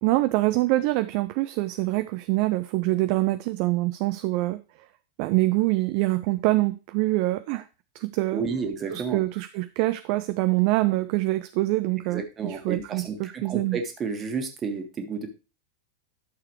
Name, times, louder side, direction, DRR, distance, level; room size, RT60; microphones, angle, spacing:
voice 1, 0.0-4.6 5.2-7.7 7.9-8.4 8.9-13.8, right 19 dB, 45° right, 12 dB, 0.4 m, -25 dB
voice 2, 8.3-9.2 12.1-15.3, right 5 dB, 25° right, 6 dB, 1.8 m, -31 dB
11.5 x 6.7 x 3.1 m, 0.31 s
figure-of-eight pair, 90°, 0 cm